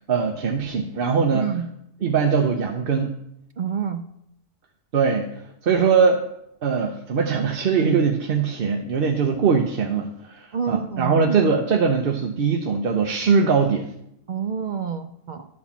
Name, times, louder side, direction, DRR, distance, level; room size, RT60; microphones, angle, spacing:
voice 1, 0.1-1.5 2.0-3.2 4.9-6.2 6.6-13.9, right 5 dB, 50° right, 3 dB, 0.8 m, -21 dB
voice 2, 1.3-1.7 3.6-4.0 10.5-11.4 14.3-15.5, right 7 dB, 70° right, 7 dB, 0.4 m, -28 dB
11.5 x 4.3 x 7.1 m, 0.79 s
omnidirectional pair, 1.4 m